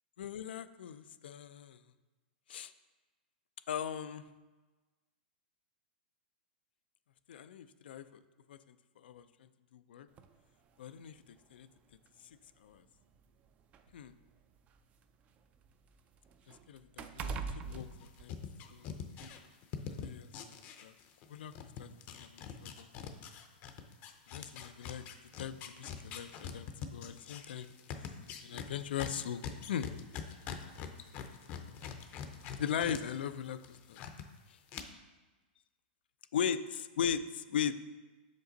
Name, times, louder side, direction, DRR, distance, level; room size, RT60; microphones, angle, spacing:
voice 1, 0.2-1.8 2.5-2.7 3.7-4.2 7.3-8.0 8.5-8.6 9.0-9.2 9.7-10.1 10.8-11.2 11.5-11.7 12.6-12.8 13.9-14.1 16.7-17.9 18.2-18.4 18.7-18.9 19.9-20.3 20.8-20.9 21.3-21.5 21.8-22.9 24.3-25.0 25.4-27.7 28.4-29.4 29.7-29.9 32.6-34.0 36.3-37.8, left 8 dB, 75° left, 12 dB, 0.4 m, -38 dB
sound 1, 10.2-10.3 11.4-11.5 11.9-12.1 13.0-15.0 15.4-18.8 19.2-19.3, right 5 dB, 25° right, 0.4 m, -44 dB
sound 2, 17.7-21.3 21.5-33.0 33.3-34.2 34.7-34.8, left 8 dB, 35° left, 0.6 m, -44 dB
6.4 x 5.3 x 3.9 m, 1.2 s
hypercardioid pair, 140°, 5 cm